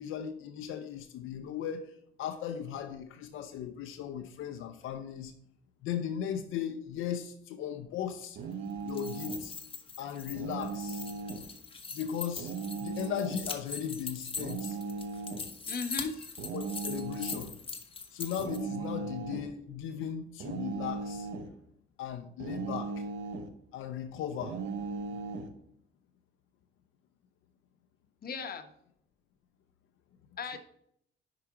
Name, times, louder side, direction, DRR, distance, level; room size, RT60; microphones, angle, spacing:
voice 1, 0.0-1.9 2.2-5.3 5.8-8.4 8.8-9.6 10.0-11.0 11.9-12.5 12.8-14.8 16.5-17.6 18.1-21.3 22.0-23.1 23.7-24.6 30.5-30.6, left 9 dB, 85° left, 0.6 m, -37 dB
sound 1, 8.4-9.5 10.3-11.5 12.4-13.5 14.4-15.5 16.4-17.5 18.4-19.5 20.4-21.5 22.4-23.5 24.4-25.5, right 4 dB, 75° right, 0.9 m, -37 dB
sound 2, 8.8-18.6, left 4 dB, 25° left, 1.1 m, -42 dB
voice 2, 15.7-16.3 28.2-28.7 30.4-30.6, left 5 dB, 50° left, 1.0 m, -36 dB
5.7 x 4.9 x 5.9 m
cardioid pair, 90°, 20 cm